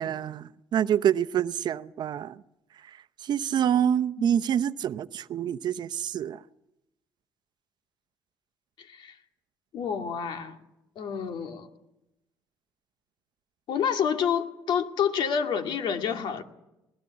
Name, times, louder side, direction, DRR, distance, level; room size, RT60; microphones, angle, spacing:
voice 1, 0.0-2.4 3.2-6.4, right 9 dB, 60° right, 15 dB, 0.7 m, -27 dB
voice 2, 8.8-9.2 9.7-10.6 11.0-11.7 13.7-16.4, left 7 dB, 65° left, 6 dB, 2.2 m, -28 dB
21.0 x 20.0 x 8.6 m, 0.92 s
supercardioid pair, 70°, 9 cm